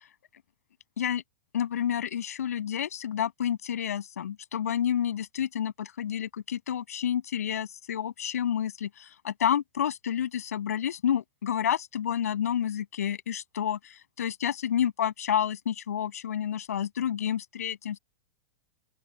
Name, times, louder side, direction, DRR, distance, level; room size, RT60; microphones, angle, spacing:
voice 1, 1.5-8.9 9.2-18.0, left 9 dB, 85° left, 7.3 m, -29 dB
open air
hypercardioid pair, 115°, 8 cm